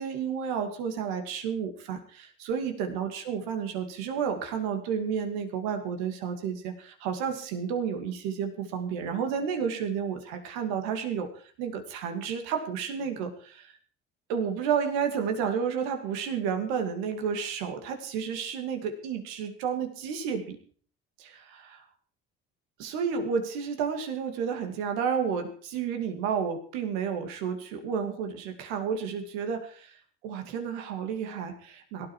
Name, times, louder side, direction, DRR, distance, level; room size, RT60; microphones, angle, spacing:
voice 1, 0.0-11.3 11.6-13.7 14.3-20.6 21.2-21.8 22.8-32.1, right 7 dB, 85° right, 6 dB, 2.7 m, -31 dB
18.0 x 13.0 x 4.7 m, 0.44 s
hypercardioid pair, 65°, 32 cm